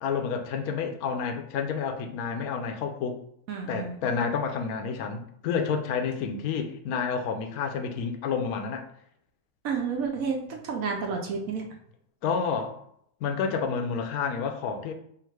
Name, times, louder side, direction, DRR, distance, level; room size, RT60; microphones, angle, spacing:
voice 1, 0.0-3.2 3.7-8.8 12.2-12.8 13.2-14.9, left 6 dB, 80° left, 5 dB, 1.1 m, -29 dB
voice 2, 3.5-3.9 9.6-11.6, right 5 dB, 70° right, 2 dB, 1.1 m, -30 dB
3.5 x 2.4 x 4.5 m, 0.71 s
omnidirectional pair, 1.5 m